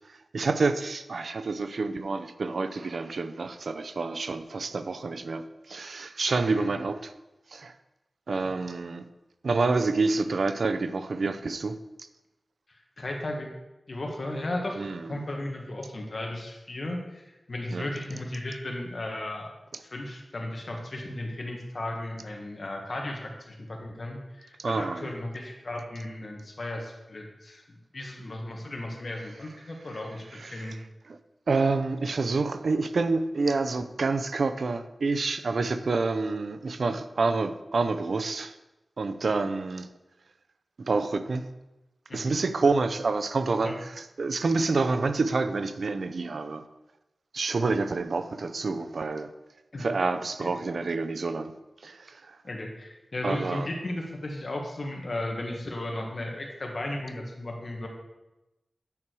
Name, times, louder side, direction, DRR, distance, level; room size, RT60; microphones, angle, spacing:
voice 1, 0.1-7.1 7.5-7.7 8.3-9.1 9.4-12.1 14.8-15.2 17.7-17.9 24.6-25.1 30.3-30.8 31.1-31.2 31.5-38.6 39.0-39.9 40.9-41.5 42.1-46.6 47.3-49.3 49.8-51.6 51.8-52.4 53.2-53.7, right 3 dB, 70° right, 11 dB, 0.5 m, -28 dB
voice 2, 13.0-13.5 13.9-19.5 19.8-30.8 42.1-42.3 43.6-43.7 49.7-49.9 50.4-50.5 52.4-57.9, left 1 dB, 50° left, 1 dB, 1.7 m, -35 dB
8.8 x 6.2 x 4.7 m, 1.0 s
wide cardioid pair, 80°, 0 cm